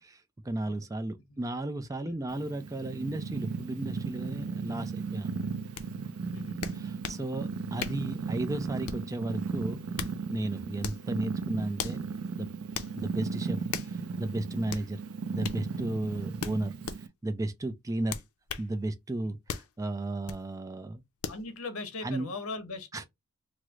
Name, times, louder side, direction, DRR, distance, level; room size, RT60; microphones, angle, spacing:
voice 1, 0.0-5.3 6.7-9.8 10.3-12.0 12.4-12.7 13.0-13.6 14.2-15.0 15.3-16.7 17.2-18.2 18.6-21.0 22.0-22.3 22.9-23.0, right 2 dB, 15° right, 0.4 m, -34 dB
Purr, 2.3-17.1, right 5 dB, 80° right, 0.5 m, -36 dB
sound 1, 5.8-5.9 6.6-7.2 7.8-8.1 8.8-9.1 9.7-10.2 10.8-11.1 11.8-12.0 12.7-12.9 13.7-13.9 14.7-14.9 15.4-15.6 16.4-17.0 18.1-18.7 19.5-19.7 20.3-20.4 21.2-21.4, left 7 dB, 85° left, 0.5 m, -37 dB
voice 2, 6.3-6.6 14.6-14.8 21.3-23.0, left 3 dB, 65° left, 0.9 m, -39 dB
3.1 x 2.0 x 3.5 m
head